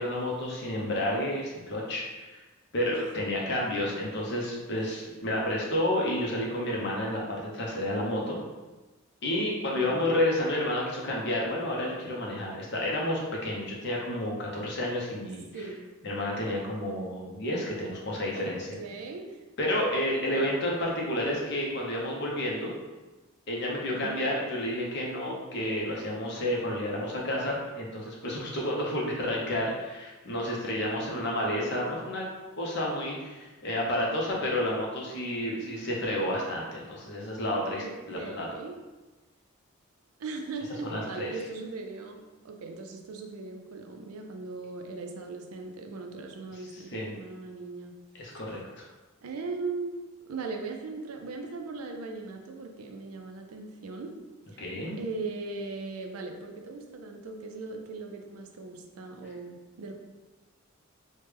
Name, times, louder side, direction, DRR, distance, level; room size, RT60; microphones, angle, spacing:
voice 1, 0.0-2.4 2.7-8.4 9.2-15.5 16.0-18.7 19.6-22.7 23.5-32.3 32.6-38.5 40.8-41.3 46.9-47.1 48.2-48.8 54.6-55.0, left 1 dB, 50° left, -2 dB, 0.7 m, -30 dB
voice 2, 9.7-10.1 15.5-15.8 18.3-18.5 18.8-19.4 20.1-20.8 23.9-24.2 37.8-38.7 40.2-47.9 48.3-48.4 49.2-54.1 54.5-54.6 55.0-59.9, right 3 dB, 80° right, 3 dB, 0.4 m, -39 dB
3.2 x 2.2 x 3.3 m, 1.2 s
head